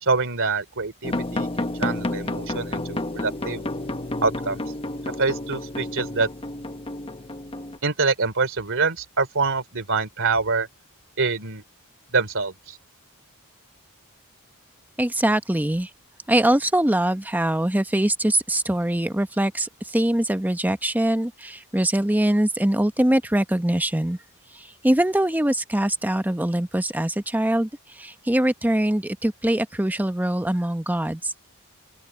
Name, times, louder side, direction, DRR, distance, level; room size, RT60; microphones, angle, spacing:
voice 1, 0.0-3.6 4.2-4.6 5.2-6.3 7.8-10.7 11.2-11.6 12.1-12.8, right 4 dB, 60° right, 3.3 m, -25 dB
sound 1, 1.0-7.8, left 1 dB, 25° left, 1.2 m, -30 dB
voice 2, 15.0-15.9 16.3-24.2 24.5-27.7 28.0-31.5, right 1 dB, 10° right, 0.8 m, -23 dB
open air
head